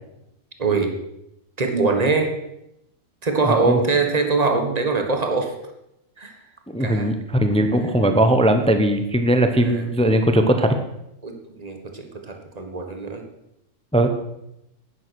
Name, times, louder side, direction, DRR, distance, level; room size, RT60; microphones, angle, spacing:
voice 1, 0.6-0.9 1.6-2.3 3.2-5.5 6.2-6.3 6.8-7.1 9.6-9.9 11.2-13.2, right 4 dB, 30° right, 4 dB, 1.7 m, -23 dB
voice 2, 3.4-3.8 6.7-10.7 13.9-14.1, right 1 dB, 5° left, 7 dB, 0.7 m, -19 dB
11.0 x 9.5 x 6.2 m, 0.84 s
omnidirectional pair, 1.4 m